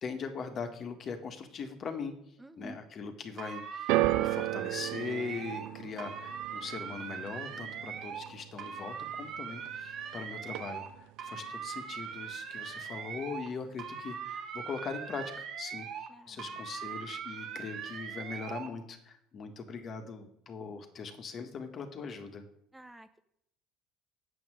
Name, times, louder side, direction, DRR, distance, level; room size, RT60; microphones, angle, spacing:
voice 1, 0.0-2.1 2.6-3.9 4.2-22.4, left 5 dB, 45° left, 6 dB, 1.7 m, -41 dB
voice 2, 2.4-2.9 16.1-16.6 22.7-23.2, right 2 dB, 10° right, 9 dB, 0.9 m, -51 dB
sound 1, 3.4-5.7 6.0-8.3 8.6-10.9 11.2-13.5 13.8-16.1 16.4-18.7, right 7 dB, 55° right, 1.6 m, -41 dB
sound 2, 3.9-10.2 10.4-11.1 11.8-11.9, right 17 dB, 70° right, 0.4 m, -35 dB
8.6 x 6.3 x 7.6 m, 0.75 s
hypercardioid pair, 70°, 0 cm